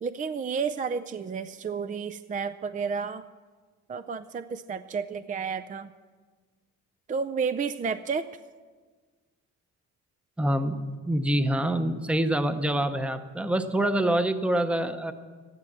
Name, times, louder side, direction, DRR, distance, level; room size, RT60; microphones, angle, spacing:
voice 1, 0.0-3.3 3.9-5.9 7.1-8.3, right 5 dB, 25° right, 13 dB, 0.4 m, -31 dB
voice 2, 10.4-15.1, right 1 dB, 5° right, 9 dB, 0.8 m, -26 dB
13.0 x 11.0 x 7.4 m, 1.5 s
cardioid pair, 90°, 30 cm